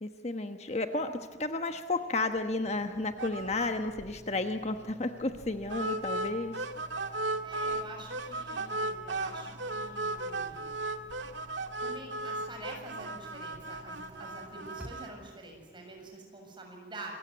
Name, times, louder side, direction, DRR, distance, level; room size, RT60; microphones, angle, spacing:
voice 1, 0.0-1.1 1.4-6.7, left 2 dB, 35° left, 7 dB, 1.2 m, -32 dB
sound 1, 1.0-16.2, equal, 10° right, 2.9 m, -53 dB
sound 2, 3.2-3.7 4.0-4.1 4.4-4.5 5.7-7.8 8.1-15.1, right 2 dB, 85° right, 1.9 m, -36 dB
voice 2, 7.4-10.7 11.8-17.1, right 2 dB, 25° right, 2 dB, 7.2 m, -47 dB
27.5 x 22.5 x 9.5 m, 1.2 s
head